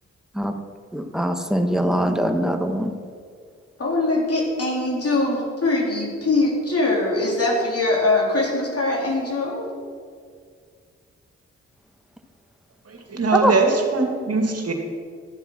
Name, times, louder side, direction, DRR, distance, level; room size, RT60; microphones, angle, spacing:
voice 1, 0.9-2.9 13.3-13.5, equal, ahead, 5 dB, 1.4 m, -22 dB
voice 2, 3.8-9.6, left 2 dB, 55° left, -3 dB, 3.5 m, -22 dB
voice 3, 12.9-13.7 13.9-14.7, right 4 dB, 55° right, 3 dB, 2.3 m, -21 dB
12.5 x 7.8 x 6.1 m, 2.1 s
supercardioid pair, 45°, 29 cm